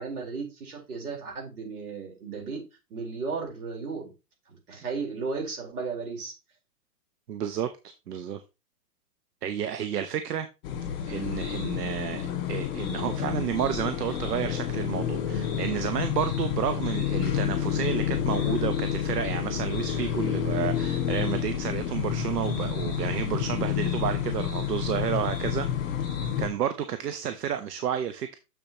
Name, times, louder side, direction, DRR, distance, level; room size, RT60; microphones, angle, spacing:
voice 1, 0.0-2.6 2.9-4.1 4.5-6.3, right 4 dB, 70° right, 4.2 m, -35 dB
voice 2, 7.3-8.4 9.4-10.5 11.1-25.9 26.4-28.4, right 9 dB, 90° right, 0.9 m, -31 dB
sound 1, 10.6-26.5, left 9 dB, 35° left, 2.0 m, -29 dB
7.0 x 6.9 x 2.9 m
hypercardioid pair, 160°, 46 cm